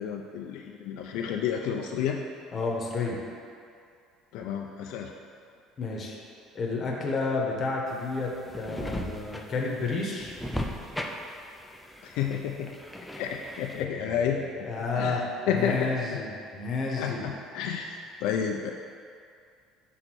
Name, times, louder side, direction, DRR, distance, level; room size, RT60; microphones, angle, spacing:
voice 1, 0.0-2.2 4.3-5.1 12.0-12.7 13.2-14.4 15.0-16.2 17.0-18.7, left 8 dB, 65° left, 1 dB, 0.4 m, -30 dB
voice 2, 2.5-3.2 5.8-6.2 6.5-10.3 13.8-17.3, left 3 dB, 25° left, -2 dB, 1.0 m, -31 dB
sound 1, 7.9-13.8, left 1 dB, ahead, 0.4 m, -37 dB
6.0 x 3.9 x 6.1 m, 2.4 s
cardioid pair, 170°, 0 cm